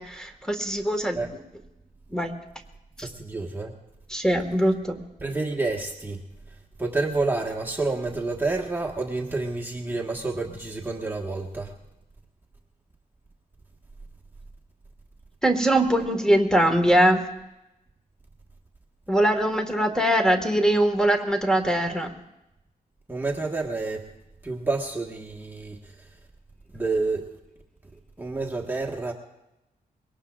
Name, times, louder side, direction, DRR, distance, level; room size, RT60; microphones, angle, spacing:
voice 1, 0.0-1.2 2.1-2.3 4.1-5.0 15.4-17.2 19.1-22.1, right 1 dB, 5° left, 5 dB, 1.7 m, -22 dB
voice 2, 3.0-3.8 5.2-6.2 6.5-11.7 23.1-24.1 24.4-26.2 26.7-27.3 27.9-29.1, right 3 dB, 15° right, -1 dB, 1.5 m, -29 dB
22.5 x 18.5 x 2.5 m, 0.91 s
cardioid pair, 65°, 16 cm